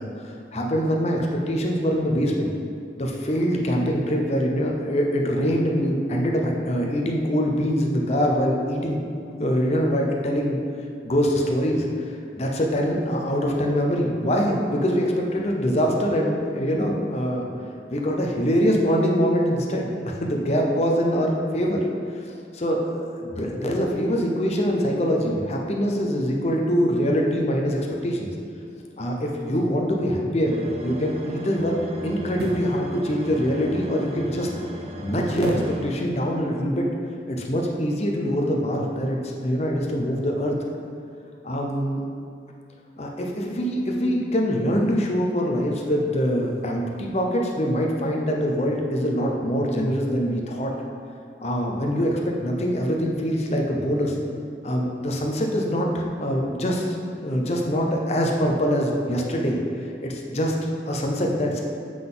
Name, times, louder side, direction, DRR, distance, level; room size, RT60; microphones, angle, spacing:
voice 1, 0.0-2.5 3.0-9.0 9.4-10.6 11.0-11.9 12.4-17.5 17.9-21.8 22.5-28.3 29.0-31.8 32.0-34.5 35.0-36.8 37.3-40.6 41.4-42.0 43.0-50.7 51.4-54.1 54.6-59.6 60.0-60.6 60.8-61.6, equal, 35° left, 0 dB, 0.6 m, -24 dB
sound 1, 30.4-36.4, right 1 dB, 35° right, 0.4 m, -38 dB
sound 2, 32.3-32.8 35.4-35.8 36.3-36.4, right 1 dB, 65° right, 0.7 m, -30 dB
7.6 x 3.8 x 3.8 m, 2.4 s
head